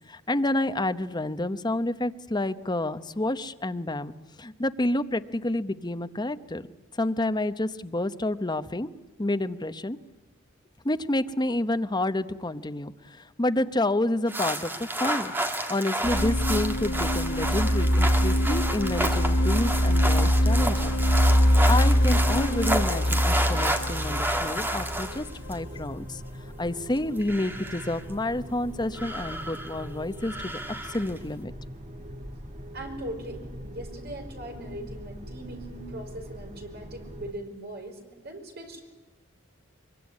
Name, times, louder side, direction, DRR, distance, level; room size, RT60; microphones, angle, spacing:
voice 1, 0.1-6.6 7.0-8.9 9.2-10.0 10.8-15.3 15.7-20.9 21.7-26.2 26.6-30.6 30.9-31.5, left 1 dB, 20° left, 10 dB, 0.9 m, -29 dB
sound 1, 14.3-25.5 27.0-28.0 28.9-29.9 30.2-31.2, right 1 dB, 10° right, 2.0 m, -31 dB
sound 2, 16.0-25.8, equal, 80° left, 1.7 m, -23 dB
sound 3, 18.2-37.3, equal, 35° right, 2.3 m, -42 dB
voice 2, 32.7-38.9, right 1 dB, 50° right, 3 dB, 5.3 m, -40 dB
23.5 x 23.5 x 9.7 m, 1.1 s
head